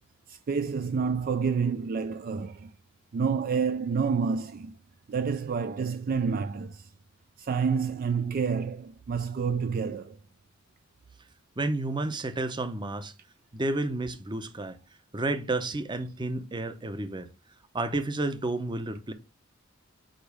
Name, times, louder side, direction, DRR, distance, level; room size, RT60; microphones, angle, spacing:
voice 1, 0.3-2.7 3.1-4.8 5.1-6.9 7.4-10.2, right 5 dB, 45° right, 0.3 m, -29 dB
voice 2, 11.6-13.1 13.5-14.8 15.1-17.3 17.7-19.1, right 2 dB, 25° right, 0.7 m, -31 dB
5.1 x 4.9 x 4.9 m
head